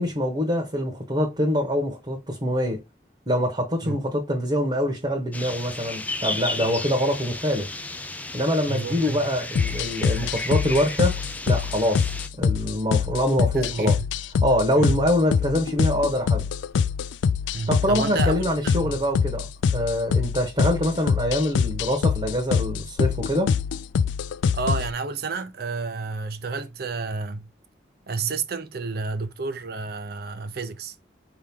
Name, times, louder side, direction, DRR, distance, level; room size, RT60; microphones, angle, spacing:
voice 1, 0.0-2.8 3.3-7.7 8.3-12.1 12.4-14.0 14.4-16.5 17.7-23.6, equal, 30° right, 1.0 m, -24 dB
sound 1, 5.3-12.3, left 2 dB, 10° left, 0.3 m, -34 dB
voice 2, 8.7-9.2 13.6-14.1 14.8-15.0 17.5-18.9 24.5-27.5 28.1-31.0, right 4 dB, 55° right, 0.6 m, -30 dB
sound 2, 9.6-24.9, left 6 dB, 85° left, 0.3 m, -25 dB
4.7 x 3.0 x 3.5 m
head